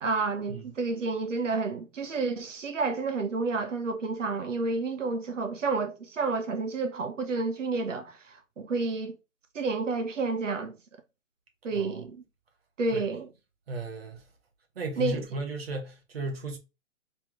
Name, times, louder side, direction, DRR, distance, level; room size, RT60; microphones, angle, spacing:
voice 1, 0.0-9.2 9.5-10.8 11.6-12.2 12.8-13.3 15.0-15.2, right 3 dB, 65° right, 1.0 m, -30 dB
voice 2, 11.7-12.0 12.9-13.0 13.7-14.2 14.8-16.6, right 2 dB, 45° right, 1.2 m, -35 dB
3.3 x 3.2 x 3.6 m
hypercardioid pair, 175°, 40 cm